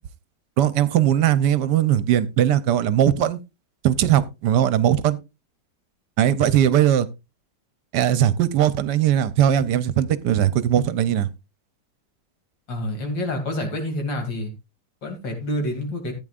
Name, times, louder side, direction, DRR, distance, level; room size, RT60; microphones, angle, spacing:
voice 1, 0.6-3.4 3.8-5.2 6.2-7.1 7.9-11.3, right 10 dB, 70° right, 1.3 m, -19 dB
voice 2, 12.7-14.5 15.0-16.1, left 1 dB, 90° left, 3.3 m, -28 dB
14.5 x 8.8 x 2.4 m
omnidirectional pair, 1.9 m